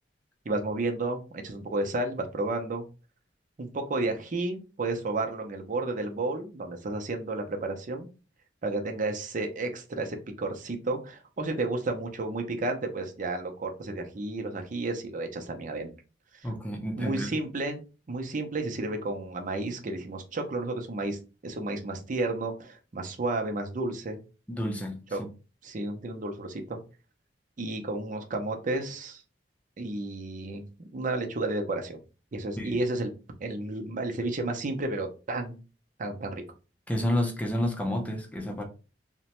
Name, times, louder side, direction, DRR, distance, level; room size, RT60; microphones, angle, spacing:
voice 1, 0.4-2.8 3.6-8.1 8.6-15.9 16.3-16.5 17.0-24.2 25.1-25.2 25.6-26.8 27.6-29.2 29.8-32.0 32.3-33.1 33.4-35.6 36.0-36.4, right 2 dB, 45° right, 0.6 m, -32 dB
voice 2, 16.4-17.3 24.5-25.0 32.6-32.8 36.9-38.6, equal, 10° left, 0.6 m, -30 dB
3.0 x 2.1 x 2.9 m
head